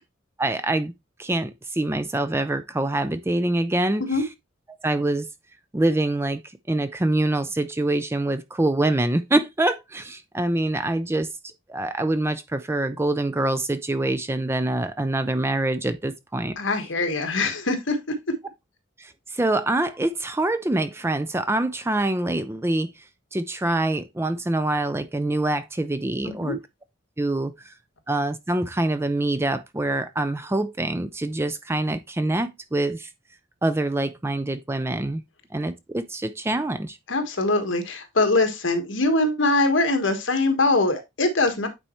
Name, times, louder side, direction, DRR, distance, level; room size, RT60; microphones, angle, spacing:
voice 1, 0.4-0.9 1.2-4.2 4.8-5.3 5.7-6.4 6.7-11.3 11.7-16.5 19.0-22.9 23.3-26.6 27.2-27.7 28.1-33.1 33.6-35.2 35.5-37.0, right 2 dB, 10° right, 0.4 m, -25 dB
voice 2, 16.6-18.0 26.2-26.5 37.1-41.7, left 2 dB, 70° left, 1.4 m, -22 dB
8.8 x 4.2 x 3.0 m
head